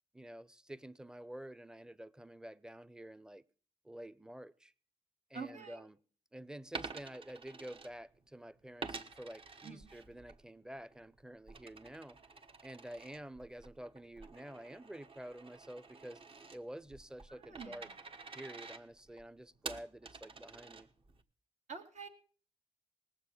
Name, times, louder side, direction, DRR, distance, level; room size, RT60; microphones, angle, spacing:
voice 1, 0.1-3.4 3.8-4.7 5.3-6.0 6.3-12.2 12.6-16.2 16.5-17.9 18.3-20.9, right 1 dB, 5° right, 0.7 m, -49 dB
voice 2, 5.3-5.9 9.6-9.9 17.3-18.0 21.7-22.1, right 5 dB, 65° right, 2.4 m, -47 dB
Coin (dropping), 6.6-8.3 8.8-10.4 10.8-21.2, right 4 dB, 45° right, 1.4 m, -49 dB
18.5 x 7.7 x 6.7 m
cardioid pair, 65°, 13 cm